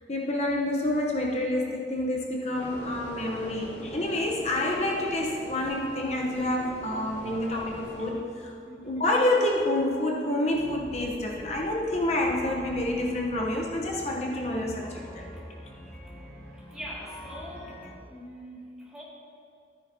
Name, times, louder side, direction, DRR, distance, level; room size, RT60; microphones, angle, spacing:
voice 1, 0.1-8.5 8.8-15.2, left 1 dB, 40° left, -1 dB, 0.9 m, -28 dB
sound 1, 2.5-8.1, equal, 85° left, 2.0 m, -43 dB
voice 2, 8.6-9.0 16.0-16.1 16.7-17.8 18.1-19.0, equal, 5° right, -8 dB, 2.2 m, -42 dB
sound 2, 10.5-17.9, equal, 15° left, 2.6 m, -46 dB
13.0 x 9.8 x 2.8 m, 2.6 s
head